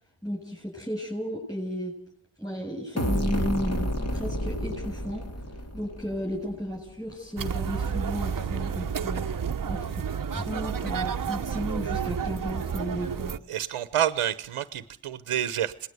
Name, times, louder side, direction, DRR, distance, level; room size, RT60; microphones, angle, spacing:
voice 1, 0.2-1.9 2.4-5.2 5.7-9.3 9.7-10.0 10.3-13.3, equal, 5° left, 0 dB, 7.7 m, -33 dB
sound 1, 3.0-6.6, equal, 30° left, 2.7 m, -30 dB
sound 2, 7.4-13.4, right 7 dB, 40° right, 1.0 m, -30 dB
voice 2, 13.5-15.9, right 11 dB, 90° right, 14 dB, 1.1 m, -28 dB
27.0 x 19.5 x 8.1 m, 0.62 s
cardioid pair, 60°, 50 cm